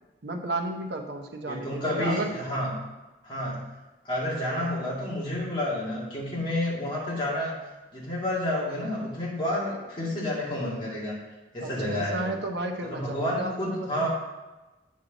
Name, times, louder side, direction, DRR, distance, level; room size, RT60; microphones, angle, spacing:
voice 1, 0.2-2.3 4.5-4.6 11.6-14.1, right 2 dB, 75° right, 2 dB, 0.9 m, -33 dB
voice 2, 1.5-2.8 3.2-3.7 4.0-7.5 7.9-11.2 11.5-12.3 12.8-14.1, left 1 dB, 25° left, -6 dB, 2.2 m, -30 dB
8.4 x 5.7 x 4.0 m, 1.1 s
head